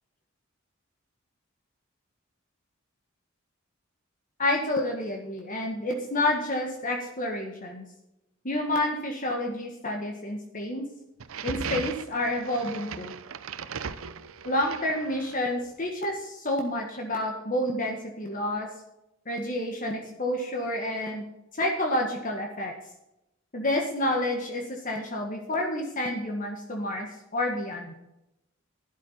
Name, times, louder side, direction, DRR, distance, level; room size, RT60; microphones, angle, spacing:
voice 1, 4.4-7.8 8.4-10.8 11.4-13.1 14.4-18.7 19.2-21.2 21.5-22.7 23.5-27.9, left 1 dB, 40° left, 2 dB, 1.7 m, -29 dB
sound 1, 11.2-15.5, right 6 dB, 85° right, 0.7 m, -37 dB
12.0 x 11.5 x 4.3 m, 0.90 s
head